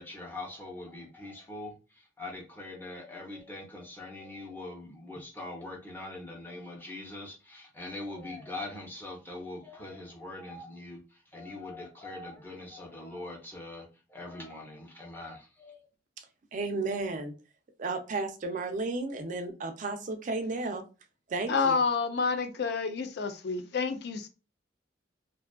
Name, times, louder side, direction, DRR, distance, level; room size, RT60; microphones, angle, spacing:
voice 1, 0.0-15.9, left 2 dB, 10° left, 0.7 m, -42 dB
voice 2, 16.5-17.3 17.8-20.8 21.3-21.8, right 3 dB, 45° right, 0.4 m, -33 dB
voice 3, 21.5-24.3, left 5 dB, 60° left, 0.4 m, -29 dB
2.5 x 2.3 x 2.2 m
head